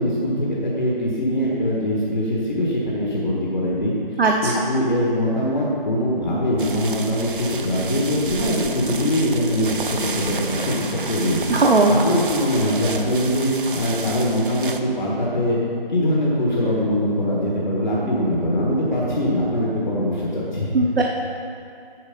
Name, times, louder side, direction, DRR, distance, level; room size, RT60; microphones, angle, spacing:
voice 1, 0.0-4.0 4.4-11.6 11.9-13.5 13.8-15.6 15.9-20.7, equal, 50° left, -5 dB, 1.8 m, -22 dB
voice 2, 4.2-4.6 11.5-12.0 20.7-21.0, right 3 dB, 85° right, -1 dB, 1.0 m, -17 dB
sound 1, 6.6-14.8, right 4 dB, 60° right, 0.7 m, -31 dB
9.6 x 5.8 x 5.3 m, 2.4 s
figure-of-eight pair, 175°, 29 cm